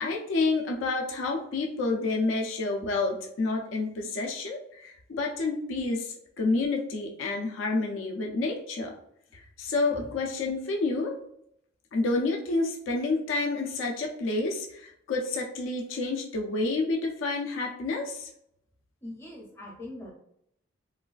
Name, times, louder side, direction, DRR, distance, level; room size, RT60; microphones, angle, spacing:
voice 1, 0.0-6.1 6.4-8.9 9.3-11.1 11.9-18.3, left 3 dB, 70° left, 1 dB, 0.4 m, -29 dB
voice 2, 19.0-20.1, left 1 dB, 10° left, -2 dB, 0.6 m, -42 dB
3.1 x 2.2 x 2.3 m, 0.73 s
head